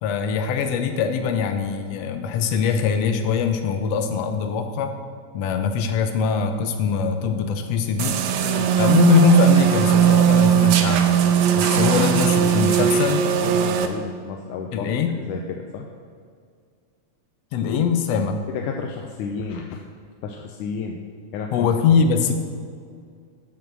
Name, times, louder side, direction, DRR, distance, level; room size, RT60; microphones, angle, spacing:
voice 1, 0.0-5.0 5.3-8.2 8.8-11.1 11.5-13.2 14.7-15.2 17.5-18.4 21.5-22.3, left 6 dB, 65° left, 6 dB, 1.8 m, -22 dB
sound 1, 8.0-13.9, right 9 dB, 75° right, 1.9 m, -18 dB
voice 2, 11.8-12.6 13.4-14.9 15.3-15.4 15.7-15.9 18.5-19.8 20.2-21.0 21.3-21.7, left 6 dB, 90° left, 2 dB, 2.2 m, -31 dB
14.0 x 6.1 x 6.3 m, 2.2 s
omnidirectional pair, 3.5 m